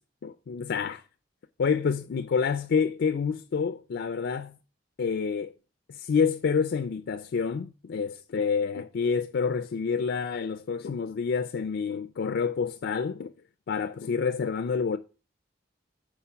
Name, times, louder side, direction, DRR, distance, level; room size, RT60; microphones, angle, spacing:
voice 1, 0.2-1.0 1.6-4.6 5.0-5.5 5.9-13.3 13.7-15.0, left 5 dB, 65° left, 0.4 m, -28 dB
5.6 x 4.4 x 5.7 m
head